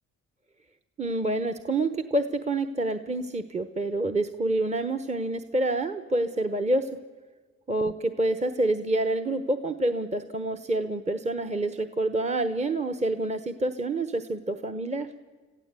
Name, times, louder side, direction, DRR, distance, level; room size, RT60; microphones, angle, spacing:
voice 1, 1.0-7.0 7.7-15.1, right 2 dB, 20° right, 8 dB, 1.0 m, -27 dB
26.5 x 15.0 x 8.3 m, 1.4 s
cardioid pair, 90°, 30 cm